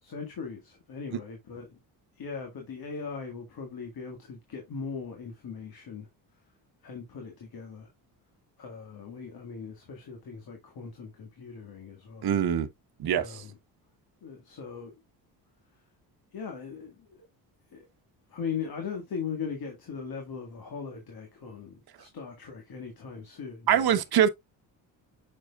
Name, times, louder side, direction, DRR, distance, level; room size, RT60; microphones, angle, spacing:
voice 1, 0.0-1.8 2.2-6.1 6.8-7.9 8.6-12.3 13.1-13.6 14.2-14.9 16.3-17.3 17.7-17.9 18.3-24.0, left 6 dB, 55° left, 2.0 m, -39 dB
voice 2, 12.2-12.7 13.0-13.4 23.7-24.3, right 9 dB, 55° right, 1.0 m, -23 dB
6.3 x 6.3 x 2.4 m
cardioid pair, 80°, 43 cm